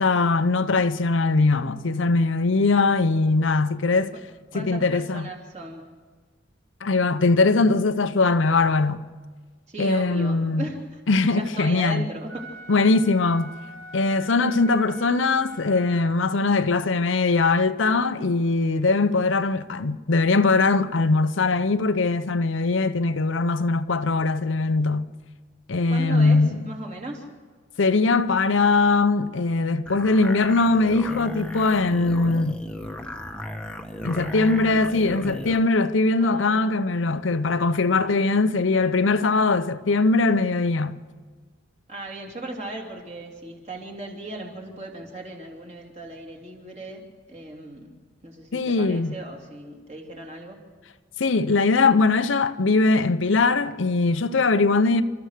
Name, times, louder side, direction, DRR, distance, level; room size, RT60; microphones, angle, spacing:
voice 1, 0.0-4.1 4.5-5.3 6.8-9.1 9.8-10.7 11.1-12.1 12.7-13.5 13.9-25.1 25.7-26.5 27.8-32.6 34.0-41.0 48.5-49.2 51.2-55.0, left 3 dB, 70° left, 0.7 m, -21 dB
voice 2, 4.5-5.8 9.7-11.0 11.3-12.5 25.9-27.3 36.2-36.7 41.9-47.9 48.2-50.6, right 2 dB, 35° right, 3.0 m, -37 dB
Wind instrument woodwind instrument, 12.2-16.6, right 1 dB, 65° right, 5.2 m, -43 dB
sound 1, 29.9-35.6, left 1 dB, 5° left, 1.1 m, -35 dB
29.5 x 13.5 x 6.6 m
head